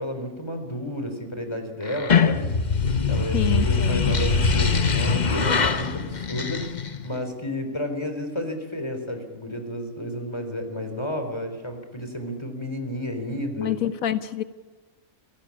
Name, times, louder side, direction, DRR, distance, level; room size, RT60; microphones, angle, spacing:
voice 1, 0.0-2.5 3.1-13.8, left 1 dB, 20° left, 6 dB, 4.0 m, -31 dB
sound 1, 1.9-7.2, left 5 dB, 35° left, 1.1 m, -22 dB
voice 2, 3.3-4.1 13.6-14.4, left 10 dB, 80° left, 13 dB, 1.3 m, -27 dB
27.0 x 17.0 x 8.6 m, 1.4 s
omnidirectional pair, 1.4 m